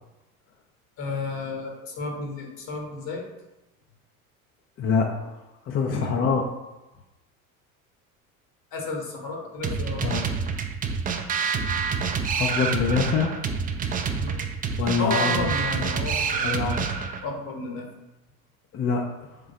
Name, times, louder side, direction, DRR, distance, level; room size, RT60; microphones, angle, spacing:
voice 1, 1.0-3.3 5.8-6.1 8.7-10.1 14.1-14.4 15.0-16.6 17.2-17.9, left 3 dB, 55° left, 1 dB, 1.4 m, -32 dB
voice 2, 4.8-5.4 5.7-6.4 10.0-10.3 12.3-13.3 14.8-15.9 16.4-16.9 18.7-19.3, left 5 dB, 30° left, 2 dB, 0.5 m, -25 dB
sound 1, 9.6-17.2, right 5 dB, 20° right, 0.4 m, -27 dB
3.7 x 3.2 x 4.0 m, 0.98 s
hypercardioid pair, 70°, 43 cm